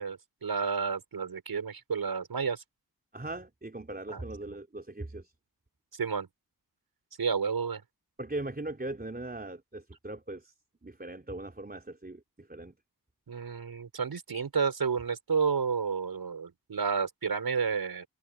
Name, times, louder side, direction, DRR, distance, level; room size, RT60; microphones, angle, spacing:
voice 1, 0.0-2.6 4.1-4.2 6.0-6.3 7.2-7.8 13.3-18.0, right 5 dB, 80° right, 5.8 m, -31 dB
voice 2, 3.1-5.3 8.2-10.5 10.8-12.7, right 2 dB, 25° right, 4.1 m, -39 dB
cardioid pair, 45°, 36 cm